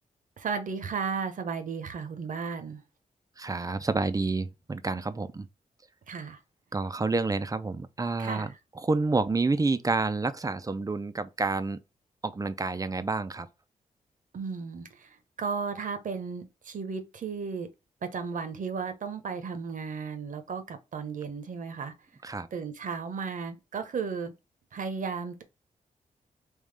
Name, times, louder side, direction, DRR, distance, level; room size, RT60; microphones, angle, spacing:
voice 1, 0.4-2.8 6.1-6.4 8.2-8.5 14.3-17.7 18.0-21.9 22.5-24.3 24.7-25.4, right 5 dB, 65° right, 0.9 m, -34 dB
voice 2, 3.4-5.5 6.7-11.8 12.2-13.5 22.2-22.5, right 3 dB, 25° right, 0.5 m, -29 dB
3.7 x 3.1 x 3.3 m
cardioid pair, 75°, 15 cm